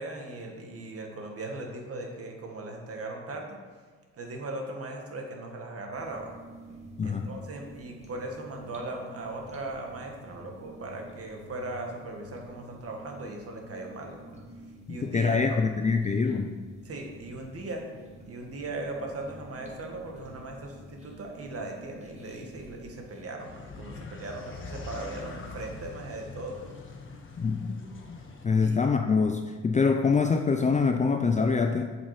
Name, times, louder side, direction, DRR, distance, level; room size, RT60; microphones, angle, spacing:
voice 1, 0.0-3.6 4.2-6.3 7.0-14.2 14.9-15.6 16.8-17.9 18.3-26.7 28.6-28.8, right 2 dB, 50° right, 2 dB, 1.8 m, -38 dB
sound 1, 5.9-23.2, right 1 dB, 20° right, 2.2 m, -49 dB
voice 2, 7.0-7.3 14.9-16.6 27.4-28.2 28.4-31.9, left 4 dB, 25° left, 5 dB, 0.5 m, -25 dB
sound 2, 23.4-28.4, left 3 dB, 40° left, 1.5 m, -43 dB
7.9 x 7.3 x 4.9 m, 1.5 s
cardioid pair, 90°, 30 cm